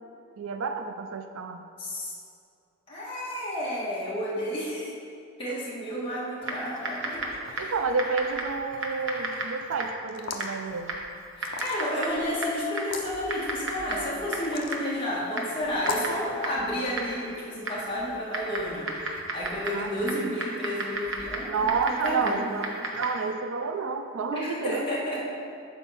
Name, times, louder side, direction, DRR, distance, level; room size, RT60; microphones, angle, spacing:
voice 1, 0.4-1.7 7.6-11.0 19.7-20.3 21.5-24.9, right 4 dB, 75° right, 7 dB, 0.4 m, -30 dB
voice 2, 1.8-2.1 2.9-4.9 5.4-7.7 11.4-22.5 24.3-25.2, left 1 dB, 25° left, -8 dB, 1.4 m, -31 dB
Typing, 6.4-23.3, right 2 dB, 60° right, 0.9 m, -35 dB
sound 1, 10.1-10.6 11.4-12.0 12.8-13.1 14.3-14.8 15.8-16.2, left 4 dB, 65° left, 0.6 m, -35 dB
7.7 x 4.5 x 5.7 m, 2.6 s
head